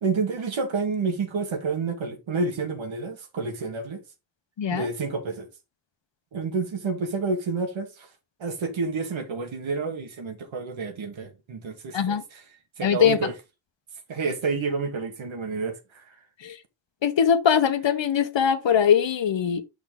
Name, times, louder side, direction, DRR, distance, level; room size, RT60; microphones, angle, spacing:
voice 1, 0.0-4.0 4.7-5.5 6.3-8.1 8.4-12.4 12.8-13.3 14.1-16.1, right 4 dB, 90° right, 1.6 m, -29 dB
voice 2, 12.8-13.2 16.4-16.6 17.0-19.6, left 8 dB, 70° left, 1.1 m, -21 dB
6.4 x 5.7 x 3.6 m
cardioid pair, 70°, 46 cm